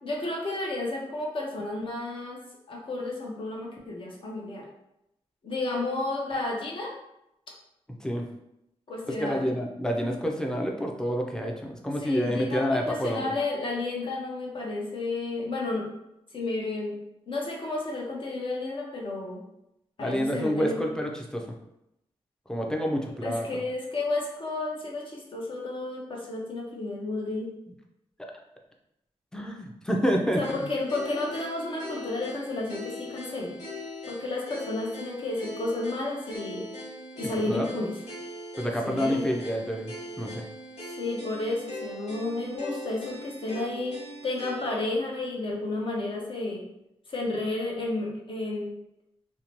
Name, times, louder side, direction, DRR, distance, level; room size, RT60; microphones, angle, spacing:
voice 1, 0.0-2.4 2.7-4.7 5.4-6.9 8.9-9.5 12.0-15.9 16.3-17.0 17.3-19.4 20.0-20.8 23.2-27.5 30.4-33.6 34.1-36.7 37.2-38.0 38.8-39.3 41.0-46.7 47.1-48.7, left 2 dB, 55° left, -2 dB, 0.7 m, -32 dB
voice 2, 9.1-13.3 20.0-21.5 22.5-23.6 28.3-28.4 29.3-30.7 37.4-37.7 38.6-40.5, equal, 5° left, 1 dB, 0.4 m, -28 dB
sound 1, 30.4-44.9, left 1 dB, 80° left, 1.1 m, -40 dB
2.6 x 2.1 x 2.9 m, 0.83 s
wide cardioid pair, 90°, 11 cm